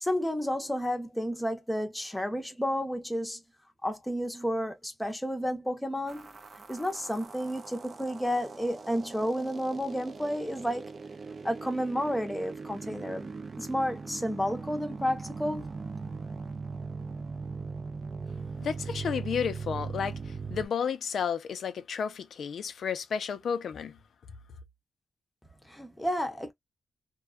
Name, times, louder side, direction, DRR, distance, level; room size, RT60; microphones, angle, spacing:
voice 1, 0.0-3.4 3.8-6.3 6.7-10.9 11.4-13.3 13.6-15.7 25.6-26.5, equal, 5° left, 0.6 m, -31 dB
sound 1, 6.1-20.7, right 4 dB, 35° right, 0.3 m, -40 dB
voice 2, 18.6-24.0, left 7 dB, 65° left, 0.4 m, -32 dB
2.5 x 2.2 x 2.3 m
wide cardioid pair, 175°, 0 cm